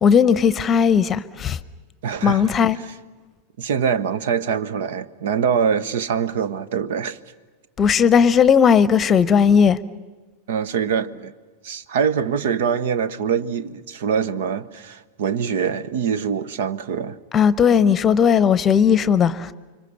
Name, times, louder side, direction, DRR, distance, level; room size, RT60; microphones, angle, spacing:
voice 1, 0.0-1.6 2.2-2.8 7.8-9.8 17.3-19.5, left 7 dB, 25° left, 0.9 m, -16 dB
voice 2, 2.0-2.5 3.6-7.2 10.5-11.3 11.6-17.2, right 7 dB, 55° right, 1.0 m, -24 dB
29.5 x 25.5 x 7.1 m
figure-of-eight pair, 90°, 0 cm